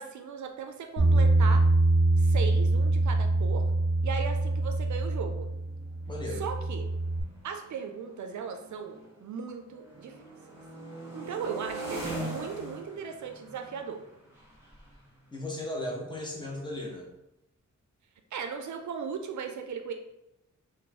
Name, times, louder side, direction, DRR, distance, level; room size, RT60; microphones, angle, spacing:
voice 1, 0.0-1.6 2.2-3.7 4.0-5.5 6.4-6.9 7.4-10.2 11.1-14.0 18.3-19.9, right 6 dB, 70° right, 5 dB, 0.5 m, -37 dB
Bass guitar, 1.0-7.2, right 2 dB, 35° left, 1.1 m, -24 dB
sound 1, 3.9-4.0 4.3-4.6 5.4-9.3 9.6-16.3, right 1 dB, 10° right, 1.1 m, -43 dB
voice 2, 6.1-6.4 15.3-17.1, left 1 dB, 15° left, -1 dB, 0.6 m, -36 dB
3.0 x 2.2 x 3.7 m, 0.87 s
wide cardioid pair, 170°, 30 cm